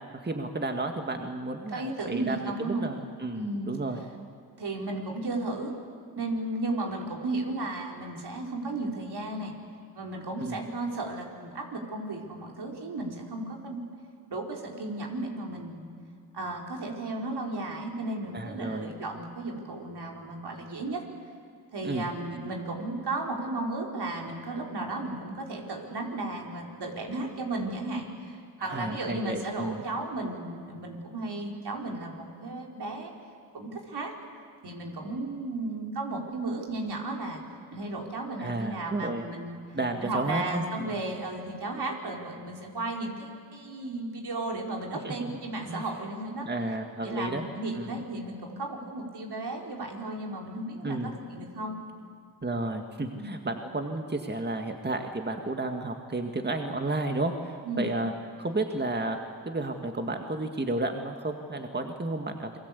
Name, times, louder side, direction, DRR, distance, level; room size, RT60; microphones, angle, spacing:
voice 1, 0.1-4.0 10.4-10.6 18.3-18.9 21.8-22.1 28.7-29.8 38.4-39.2 39.7-41.0 45.0-45.4 45.7-45.8 46.4-47.5 47.7-47.9 50.8-51.1 52.4-58.1 58.4-59.2 59.5-62.6, right 2 dB, 25° right, 4 dB, 2.0 m, -32 dB
voice 2, 1.7-2.9 3.3-3.7 4.6-5.7 6.2-9.5 9.9-13.8 14.3-15.9 16.3-21.0 21.7-33.1 33.5-34.1 34.6-37.4 37.7-39.6 40.0-46.5 47.0-51.7 53.1-53.4 57.6-57.9, right 2 dB, 65° right, 0 dB, 4.4 m, -34 dB
28.0 x 21.0 x 8.4 m, 2.3 s
cardioid pair, 55°, 42 cm